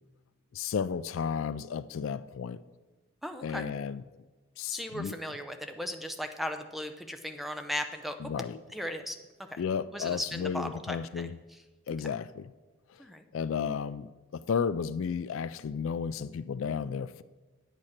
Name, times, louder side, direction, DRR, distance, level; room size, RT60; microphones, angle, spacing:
voice 1, 0.5-2.6 3.4-4.0 4.6-5.2 8.2-8.6 9.6-11.3 11.9-12.5 12.9-13.0 13.3-17.2, left 6 dB, 60° left, 16 dB, 0.3 m, -33 dB
voice 2, 3.2-3.7 4.7-8.2 8.7-9.2 9.5-9.6 9.9-11.3 13.0-13.3, equal, ahead, 7 dB, 0.6 m, -37 dB
9.0 x 9.0 x 5.9 m, 1.2 s
head